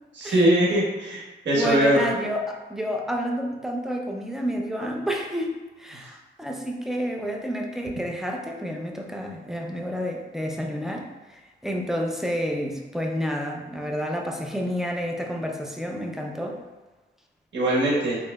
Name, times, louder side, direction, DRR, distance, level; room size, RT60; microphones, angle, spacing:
voice 1, 0.2-2.0 17.5-18.2, right 1 dB, 65° right, -5 dB, 1.4 m, -21 dB
voice 2, 1.5-16.6, equal, ahead, 0 dB, 0.5 m, -30 dB
3.8 x 3.2 x 2.3 m, 1.2 s
cardioid pair, 75°, 20 cm